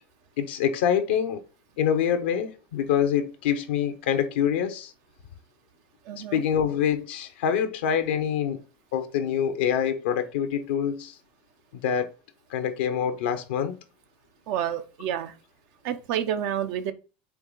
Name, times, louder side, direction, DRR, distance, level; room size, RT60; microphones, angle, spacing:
voice 1, 0.4-1.4 1.8-4.9 6.3-8.6 8.9-11.1 11.7-12.1 12.5-13.8, left 8 dB, 85° left, 0.6 m, -25 dB
voice 2, 6.1-6.4 14.5-15.3 15.8-16.9, right 10 dB, 65° right, 0.6 m, -29 dB
4.6 x 3.0 x 3.8 m
hypercardioid pair, 95°, 5 cm